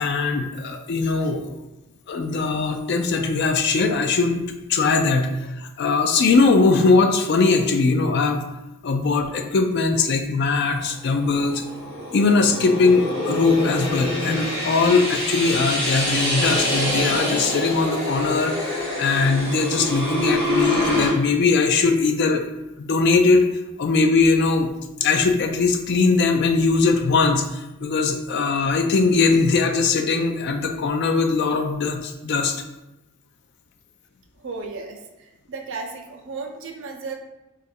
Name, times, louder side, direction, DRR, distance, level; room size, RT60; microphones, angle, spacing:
voice 1, 0.0-1.5 2.1-4.4 4.7-8.4 8.8-11.6 12.1-22.4 22.8-23.5 23.8-24.7 25.0-32.6, left 4 dB, 50° left, 5 dB, 0.3 m, -20 dB
sound 1, 11.0-21.1, left 1 dB, 5° left, 1.3 m, -26 dB
voice 2, 34.4-37.1, right 4 dB, 60° right, 3 dB, 0.5 m, -34 dB
3.0 x 2.5 x 4.2 m, 0.96 s
head